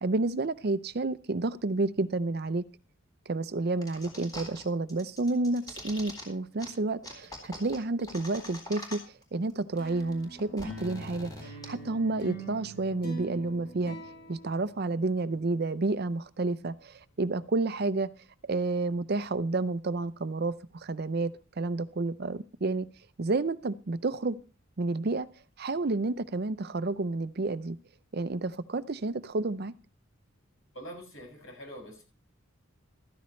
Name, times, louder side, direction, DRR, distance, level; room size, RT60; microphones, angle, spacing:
voice 1, 0.0-2.6 3.3-9.0 9.3-14.0 14.3-18.1 18.4-22.9 23.2-24.4 24.8-25.3 25.6-27.8 28.1-29.7, right 3 dB, 50° right, 14 dB, 0.6 m, -30 dB
sound 1, 3.8-4.6 4.9-6.2 6.6-6.7 7.0-9.2 9.5-9.6 9.8-11.6, left 1 dB, 20° left, 3.9 m, -43 dB
sound 2, 9.8-15.4, right 2 dB, 50° left, 6.1 m, -43 dB
voice 2, 30.7-32.0, equal, 75° left, 1 dB, 6.8 m, -44 dB
14.5 x 13.5 x 3.2 m, 0.35 s
head